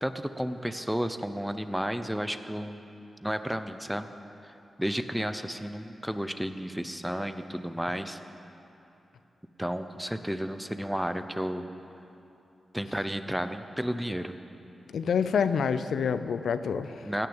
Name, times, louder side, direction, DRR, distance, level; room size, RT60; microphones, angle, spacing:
voice 1, 0.0-2.8 3.2-4.1 4.8-8.2 9.6-11.6 12.7-14.3 17.0-17.3, equal, 5° right, 9 dB, 0.7 m, -32 dB
voice 2, 14.9-17.0, left 6 dB, 85° left, 12 dB, 0.5 m, -27 dB
17.0 x 6.6 x 8.9 m, 2.9 s
cardioid pair, 75°, 0 cm